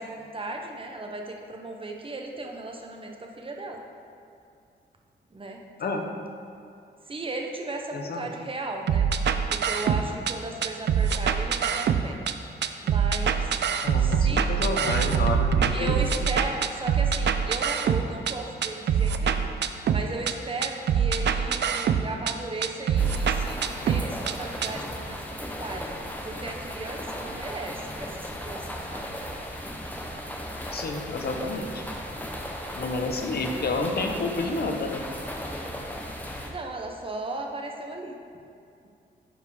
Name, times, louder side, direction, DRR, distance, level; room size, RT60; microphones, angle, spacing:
voice 1, 0.0-3.8 5.3-6.1 7.1-9.1 9.5-12.2 12.8-13.5 14.0-14.5 15.7-19.5 19.9-25.9 26.2-29.1 36.4-38.2, right 2 dB, 30° right, 2 dB, 1.0 m, -36 dB
voice 2, 7.9-8.3 13.8-16.0 30.7-31.8 32.7-35.1, left 3 dB, 60° left, 3 dB, 1.0 m, -30 dB
sound 1, 8.9-10.3 10.6-12.3 12.6-18.3 18.6-20.3 20.6-22.3 22.6-24.3 24.6-24.7, right 7 dB, 70° right, 0.5 m, -24 dB
sound 2, 23.0-36.5, equal, 10° left, 1.1 m, -36 dB
10.5 x 4.7 x 4.9 m, 2.5 s
cardioid pair, 100°, 18 cm